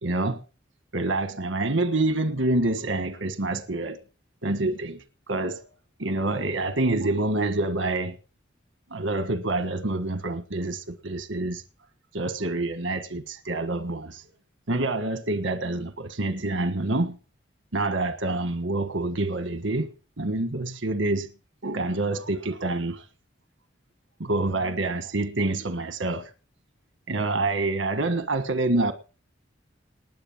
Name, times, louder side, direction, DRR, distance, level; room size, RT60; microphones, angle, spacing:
voice 1, 0.0-0.4 0.9-4.0 4.4-5.7 6.0-8.2 8.9-11.6 12.1-14.2 14.7-17.2 17.7-21.3 21.6-23.1 24.2-26.3 27.1-28.9, right 2 dB, 80° right, 1.5 m, -27 dB
20.0 x 8.0 x 7.3 m
head